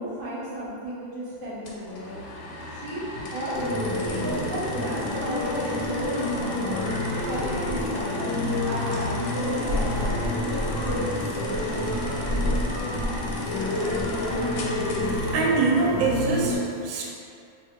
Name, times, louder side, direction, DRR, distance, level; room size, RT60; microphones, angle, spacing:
voice 1, 0.0-2.2 2.7-3.5 4.0-8.2 8.7-10.4, right 1 dB, 55° right, -7 dB, 1.1 m, -34 dB
sound 1, 1.7-15.3, left 1 dB, 90° left, 1.4 m, -37 dB
sound 2, 3.5-16.5, left 1 dB, 50° left, 0.8 m, -28 dB
voice 2, 15.1-17.1, right 4 dB, 75° right, -2 dB, 1.3 m, -24 dB
2.9 x 2.7 x 4.3 m, 2.5 s
omnidirectional pair, 2.2 m